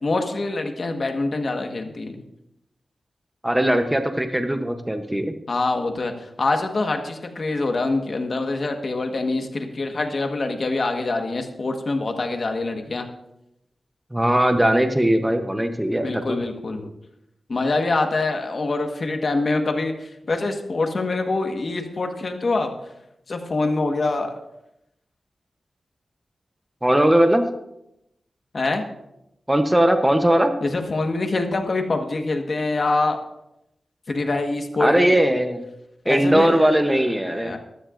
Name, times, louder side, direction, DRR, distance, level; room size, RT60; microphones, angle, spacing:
voice 1, 0.0-2.2 5.5-13.1 16.0-16.9 17.5-22.7 23.3-24.4 28.5-28.8 30.6-33.2 34.1-35.2 36.0-36.6 37.3-37.6, left 3 dB, 45° left, 4 dB, 1.3 m, -25 dB
voice 2, 3.4-5.3 14.1-16.4 26.8-27.4 29.5-30.5 34.8-35.6 36.1-37.5, right 1 dB, 10° right, 6 dB, 0.8 m, -19 dB
15.0 x 13.0 x 2.5 m, 0.84 s
wide cardioid pair, 180°, 0 cm